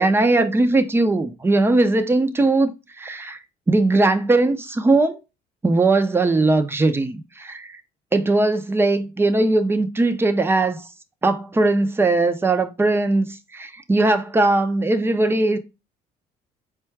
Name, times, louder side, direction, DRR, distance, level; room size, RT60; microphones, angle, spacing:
voice 1, 0.0-3.4 3.7-5.2 5.6-7.8 8.1-10.9 11.2-15.6, right 2 dB, 15° right, 0.5 m, -19 dB
4.4 x 2.3 x 4.4 m
cardioid pair, 110°, 17 cm